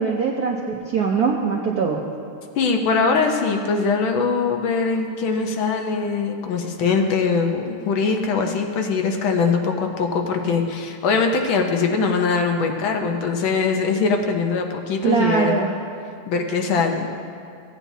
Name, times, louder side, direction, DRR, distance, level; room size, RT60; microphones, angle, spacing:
voice 1, 0.0-2.0 15.0-15.7, right 5 dB, 70° right, -1 dB, 0.9 m, -21 dB
voice 2, 2.6-15.6 16.3-17.1, left 4 dB, 70° left, 3 dB, 1.5 m, -22 dB
15.5 x 9.1 x 2.7 m, 2.3 s
omnidirectional pair, 2.4 m